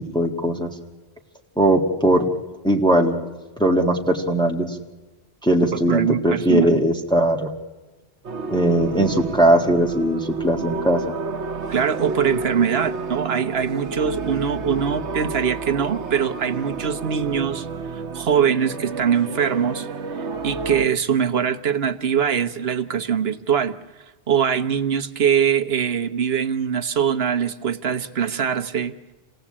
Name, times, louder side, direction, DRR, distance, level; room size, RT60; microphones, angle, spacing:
voice 1, 0.1-0.7 1.6-2.3 2.6-3.2 3.6-4.8 5.4-7.5 8.5-11.0, right 1 dB, 5° left, 1 dB, 1.8 m, -19 dB
voice 2, 5.7-6.8 11.7-17.7 17.9-19.9 20.4-23.8 24.3-28.9, right 8 dB, 65° right, 9 dB, 1.2 m, -22 dB
sound 1, 8.2-20.9, right 4 dB, 85° right, 1.3 m, -30 dB
27.5 x 17.5 x 8.6 m, 1.2 s
omnidirectional pair, 1.1 m